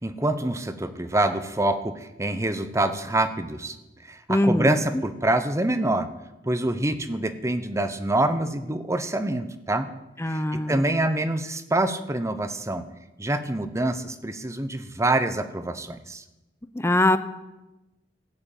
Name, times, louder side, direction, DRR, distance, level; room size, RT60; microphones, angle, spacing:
voice 1, 0.0-3.8 4.1-6.1 6.4-9.9 10.3-12.8 13.2-16.2, right 1 dB, 15° right, 10 dB, 0.9 m, -26 dB
voice 2, 4.3-4.8 10.2-10.8 16.7-17.2, left 1 dB, 15° left, 11 dB, 0.7 m, -22 dB
14.0 x 7.7 x 9.1 m, 0.99 s
head